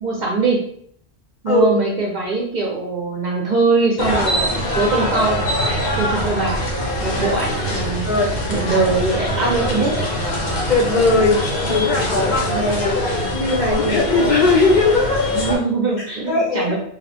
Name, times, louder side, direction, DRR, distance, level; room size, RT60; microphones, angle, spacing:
voice 1, 0.0-0.6 1.4-4.4 4.7-5.4 6.0-6.7 7.0-8.1 8.5-9.9 15.3-16.8, right 3 dB, 55° right, -2 dB, 0.5 m, -21 dB
sound 1, 4.0-15.6, equal, 80° left, 0.9 m, -23 dB
voice 2, 10.7-13.0 13.3-15.6 16.0-16.8, left 3 dB, 50° left, -4 dB, 0.6 m, -19 dB
2.7 x 2.0 x 2.7 m, 0.64 s
omnidirectional pair, 1.1 m